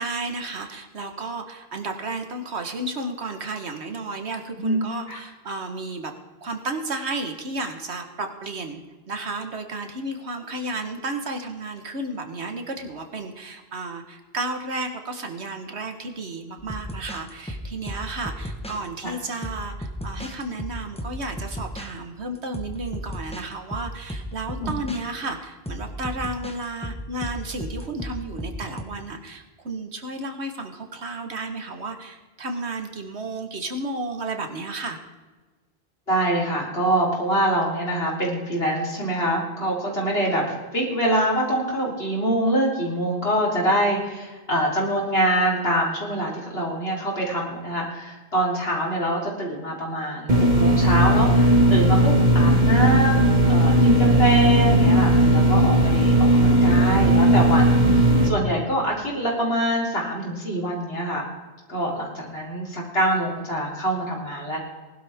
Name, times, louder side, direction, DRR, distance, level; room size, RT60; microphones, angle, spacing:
voice 1, 0.0-6.1 6.4-35.0, right 2 dB, 85° right, 5 dB, 1.7 m, -32 dB
sound 1, 16.6-18.8 19.4-21.9 22.5-23.5 23.7-25.0 25.7-28.8, equal, 5° left, 1.1 m, -34 dB
voice 2, 36.1-40.4 40.7-61.2 61.7-64.6, right 1 dB, 65° left, -3 dB, 4.1 m, -25 dB
sound 2, 50.3-58.3, right 1 dB, 45° right, 1.8 m, -17 dB
19.0 x 12.0 x 3.6 m, 1.3 s
omnidirectional pair, 1.1 m